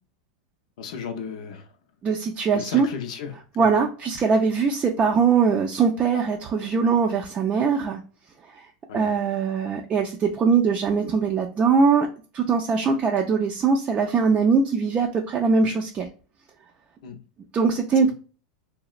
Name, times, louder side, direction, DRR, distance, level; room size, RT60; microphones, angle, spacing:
voice 1, 0.8-1.7 2.5-3.7 8.9-9.1 17.0-17.2 18.0-18.1, left 6 dB, 70° left, 0.5 m, -35 dB
voice 2, 2.0-2.9 3.6-8.0 8.5-8.7 8.9-12.1 12.3-16.1 17.5-18.1, right 5 dB, 30° right, 0.4 m, -21 dB
2.9 x 2.0 x 2.4 m
hypercardioid pair, 115°, 4 cm